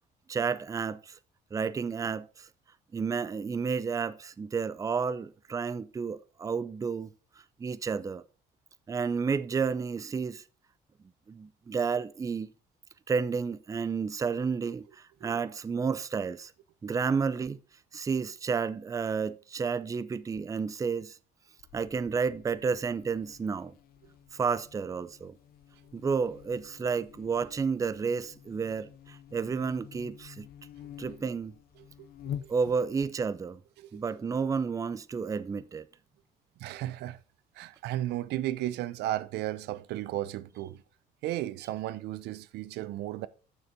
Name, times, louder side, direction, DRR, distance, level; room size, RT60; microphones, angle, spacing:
voice 1, 0.3-1.2 1.5-2.5 2.9-7.1 7.6-8.2 8.9-10.4 11.3-12.5 13.1-16.5 16.8-17.6 17.9-21.2 21.7-23.7 24.3-25.3 25.9-30.5 31.0-31.5 32.5-33.6 33.9-35.9, right 5 dB, 20° right, 0.4 m, -31 dB
Buzz, 21.6-33.0, left 9 dB, 65° left, 0.7 m, -48 dB
voice 2, 31.8-32.5 33.8-33.9 36.6-37.2 37.6-40.8 41.2-43.3, right 14 dB, 80° right, 0.5 m, -35 dB
6.9 x 6.7 x 4.9 m
cardioid pair, 110°, 17 cm